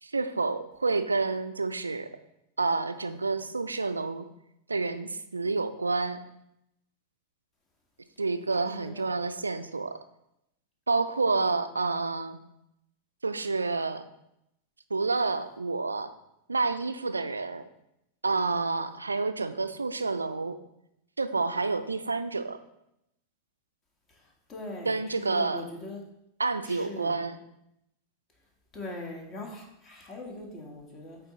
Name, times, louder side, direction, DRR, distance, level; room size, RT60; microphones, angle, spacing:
voice 1, 0.0-2.1 2.6-4.3 4.7-6.2 8.2-10.0 10.9-12.4 13.2-14.0 14.9-16.1 16.5-17.6 18.2-20.6 21.2-22.6 24.9-25.7 26.4-27.4, right 3 dB, 80° right, 11 dB, 0.3 m, -29 dB
voice 2, 8.6-9.0 24.1-24.2 24.5-26.0 26.6-27.1 28.7-31.2, left 2 dB, 25° left, 1 dB, 1.7 m, -41 dB
8.0 x 4.0 x 3.8 m, 0.82 s
figure-of-eight pair, 90°, 0 cm